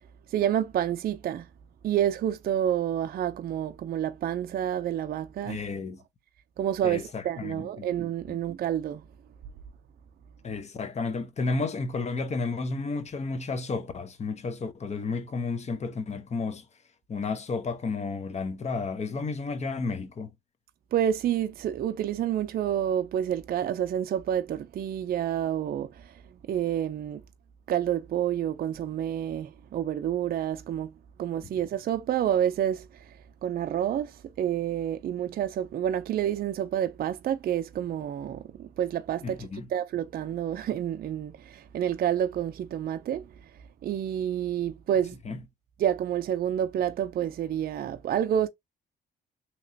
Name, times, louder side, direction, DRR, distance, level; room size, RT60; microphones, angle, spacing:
voice 1, 0.3-1.5 1.8-5.6 6.6-9.0 20.9-26.1 26.5-27.2 27.7-30.9 31.2-43.3 43.8-45.2 45.8-48.5, right 10 dB, 50° right, 0.4 m, -29 dB
voice 2, 5.5-6.0 6.8-7.9 8.3-8.4 10.4-16.6 17.1-20.3 39.2-39.7 45.2-45.4, left 4 dB, 35° left, 0.7 m, -32 dB
3.0 x 2.9 x 2.6 m
cardioid pair, 90°, 20 cm